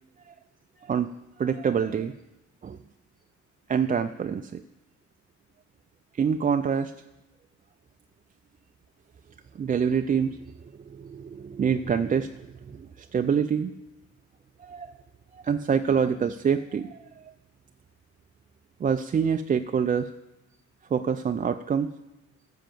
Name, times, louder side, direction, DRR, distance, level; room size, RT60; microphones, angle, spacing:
voice 1, 0.8-1.1 1.4-2.1 2.6-2.8 3.7-4.6 6.2-6.9 9.6-10.4 10.9-13.7 14.6-14.9 15.3-17.0 18.8-20.1 20.9-21.9, right 7 dB, 30° right, 7 dB, 0.4 m, -26 dB
10.0 x 5.7 x 7.6 m, 1.0 s
cardioid pair, 90°, 30 cm